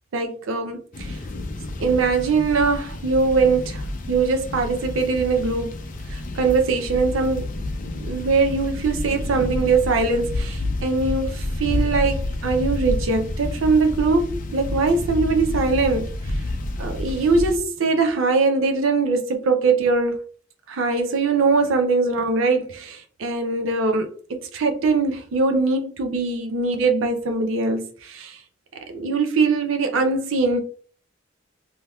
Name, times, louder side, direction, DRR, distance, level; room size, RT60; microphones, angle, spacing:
voice 1, 0.1-1.2 1.8-5.8 6.1-7.5 8.0-16.1 16.8-20.2 20.7-28.4 28.9-30.6, right 4 dB, 90° right, 0.5 m, -22 dB
sound 1, 0.9-17.6, left 2 dB, 45° left, 0.5 m, -29 dB
3.3 x 2.8 x 2.2 m
head